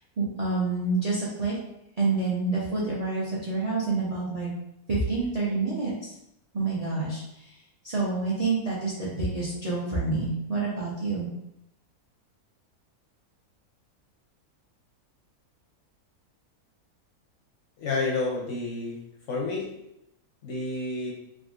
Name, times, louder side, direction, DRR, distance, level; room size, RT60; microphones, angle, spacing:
voice 1, 0.2-1.6 2.0-4.5 4.9-6.1 6.5-7.6 7.8-11.3, right 3 dB, 55° right, -7 dB, 0.4 m, -28 dB
voice 2, 17.8-19.7 20.4-21.1, left 3 dB, 70° left, -2 dB, 0.8 m, -30 dB
3.6 x 2.5 x 2.4 m, 0.82 s
omnidirectional pair, 1.6 m